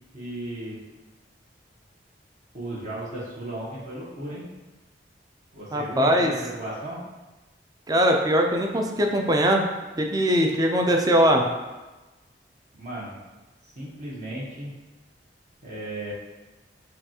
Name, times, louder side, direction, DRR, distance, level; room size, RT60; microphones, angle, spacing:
voice 1, 0.1-0.8 2.5-4.4 5.5-7.0 12.7-13.2 13.6-14.7 15.6-16.1, right 1 dB, 45° right, -7 dB, 1.0 m, -35 dB
voice 2, 5.7-6.3 7.9-9.6 10.0-11.5, equal, 20° right, 2 dB, 0.4 m, -21 dB
5.6 x 2.4 x 2.8 m, 1.1 s
head